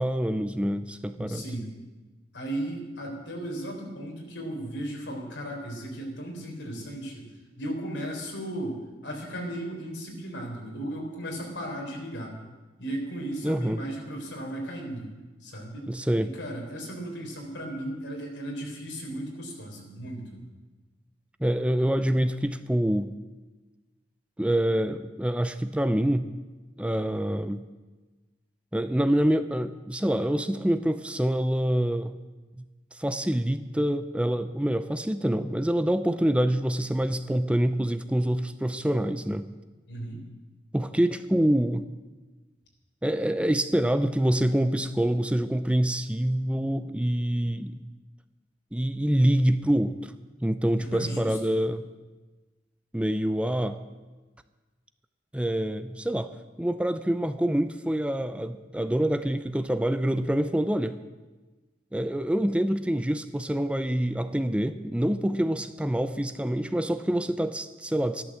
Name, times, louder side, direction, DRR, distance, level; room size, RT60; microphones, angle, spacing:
voice 1, 0.0-1.4 13.4-13.8 15.9-16.3 21.4-23.1 24.4-26.3 26.8-27.6 28.7-32.2 32.9-39.5 40.7-41.8 43.0-47.8 48.7-50.1 50.4-51.8 52.9-53.8 55.3-56.3 56.6-61.0 61.9-68.2, right 1 dB, 5° right, 10 dB, 0.5 m, -26 dB
voice 2, 1.2-1.7 2.3-7.2 7.6-12.3 12.8-15.1 15.4-15.9 16.2-20.4 39.9-40.2 50.8-51.6, right 1 dB, 80° left, 0 dB, 4.0 m, -36 dB
14.0 x 11.5 x 7.5 m, 1.2 s
head